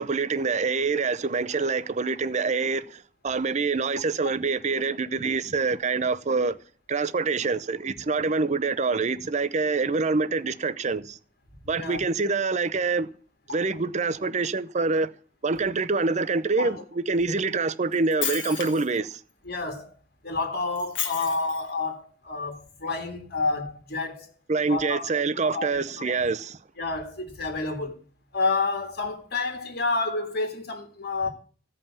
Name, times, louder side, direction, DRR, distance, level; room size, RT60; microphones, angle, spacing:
voice 1, 0.0-6.6 6.9-11.2 11.7-13.1 13.5-15.1 15.4-19.2 24.5-26.6, right 4 dB, 40° right, 0.6 m, -26 dB
Shatter, 17.9-19.0 20.8-21.7, left 8 dB, 90° left, 1.7 m, -32 dB
voice 2, 19.5-19.9 20.2-24.3 24.7-25.1 25.4-26.3 26.8-28.0 28.3-31.3, left 3 dB, 60° left, 1.8 m, -29 dB
15.0 x 5.5 x 7.2 m
head